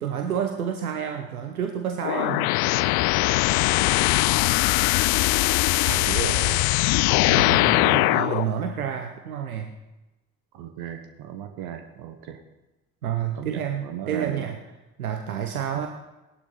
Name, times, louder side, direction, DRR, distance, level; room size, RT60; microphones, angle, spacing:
voice 1, 0.0-2.5 7.3-9.7 13.0-14.6 15.0-15.9, right 8 dB, 85° right, 5 dB, 0.8 m, -29 dB
sound 1, 2.0-8.5, left 19 dB, 60° left, 0.5 m, -21 dB
voice 2, 5.8-6.6 10.5-12.4 13.4-14.4 15.7-15.9, right 9 dB, 60° right, 7 dB, 1.3 m, -35 dB
17.0 x 11.5 x 4.0 m, 1.0 s
figure-of-eight pair, 50°, 42 cm